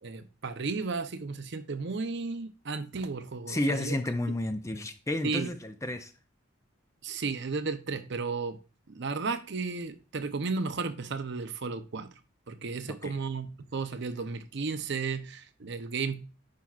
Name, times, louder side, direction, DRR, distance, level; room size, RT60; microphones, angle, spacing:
voice 1, 0.0-4.0 5.2-5.5 7.0-8.6 8.9-12.1 12.5-16.2, right 4 dB, 55° right, 0.6 m, -34 dB
voice 2, 3.5-6.1 12.8-13.1, left 1 dB, 15° left, 0.4 m, -31 dB
10.5 x 5.3 x 2.4 m
head